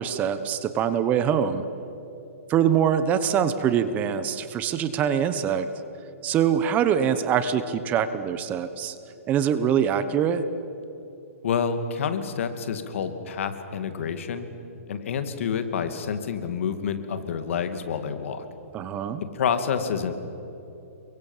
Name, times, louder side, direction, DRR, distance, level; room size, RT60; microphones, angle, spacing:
voice 1, 0.0-1.6 2.5-5.7 6.2-8.9 9.3-10.4 18.7-19.2, right 8 dB, 20° right, 12 dB, 1.1 m, -24 dB
voice 2, 11.4-14.5 14.9-18.4 19.3-20.2, left 6 dB, 60° left, 9 dB, 2.6 m, -28 dB
29.0 x 23.5 x 7.4 m, 2.9 s
hypercardioid pair, 155°, 8 cm